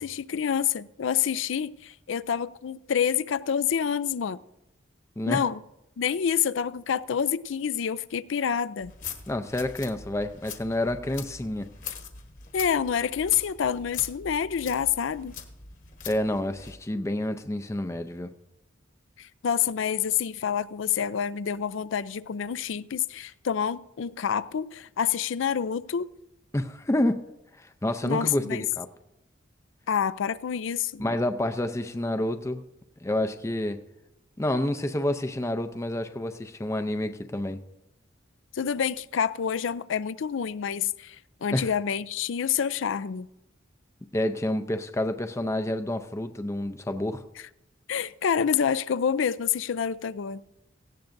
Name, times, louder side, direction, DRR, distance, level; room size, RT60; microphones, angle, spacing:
voice 1, 0.0-4.4 5.3-5.6 6.0-8.9 12.5-15.3 19.2-26.1 28.0-28.6 29.9-31.0 38.5-43.3 47.4-47.5 47.9-50.4, left 8 dB, 70° left, 0.4 m, -27 dB
sound 1, 8.8-16.8, left 6 dB, 40° left, 1.1 m, -42 dB
voice 2, 9.3-11.7 16.1-18.3 26.5-27.2 27.6-28.9 31.0-32.6 33.0-33.8 34.4-37.6 41.5-41.7 44.1-47.2, left 1 dB, 15° left, 0.5 m, -28 dB
17.5 x 15.5 x 2.6 m
head